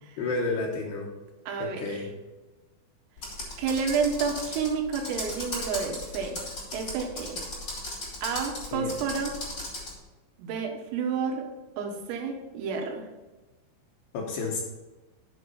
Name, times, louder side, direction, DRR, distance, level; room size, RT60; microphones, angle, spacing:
voice 1, 0.2-1.1 1.6-2.1 8.7-8.9 14.1-14.6, left 3 dB, 75° left, -1 dB, 2.7 m, -31 dB
voice 2, 1.5-2.1 3.6-6.4 6.7-7.4 8.2-9.4 10.4-11.5 11.8-13.1, right 5 dB, 85° right, 3 dB, 4.0 m, -30 dB
Computer keyboard, 3.2-9.9, left 2 dB, 25° left, 3.7 m, -36 dB
8.0 x 7.2 x 5.4 m, 1.2 s
omnidirectional pair, 5.8 m